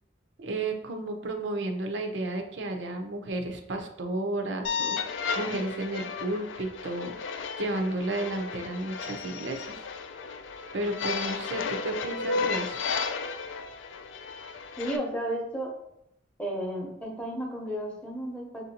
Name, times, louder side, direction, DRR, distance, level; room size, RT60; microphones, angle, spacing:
voice 1, 0.4-9.8 10.7-12.8, right 2 dB, 70° right, 5 dB, 0.6 m, -33 dB
sound 1, 4.6-15.0, left 5 dB, 75° left, 0.4 m, -34 dB
voice 2, 14.8-15.7 16.4-18.7, right 1 dB, 5° left, -1 dB, 0.8 m, -33 dB
5.7 x 2.6 x 2.8 m, 0.81 s
head